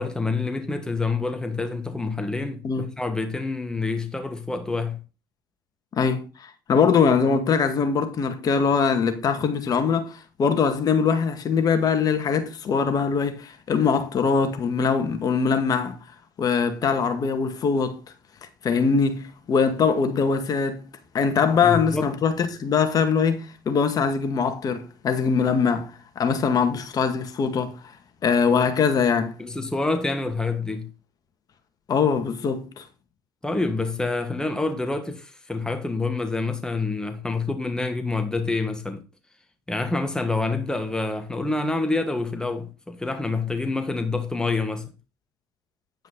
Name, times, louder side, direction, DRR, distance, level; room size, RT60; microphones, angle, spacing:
voice 1, 0.0-5.0 21.6-22.1 29.4-30.9 33.4-39.0 39.7-44.9, left 3 dB, 5° left, 1.6 m, -27 dB
voice 2, 5.9-16.0 16.4-18.0 18.6-20.9 21.1-27.8 28.2-29.4 31.9-32.8, left 5 dB, 40° left, 2.0 m, -22 dB
10.0 x 9.1 x 3.9 m
supercardioid pair, 90°, 10 cm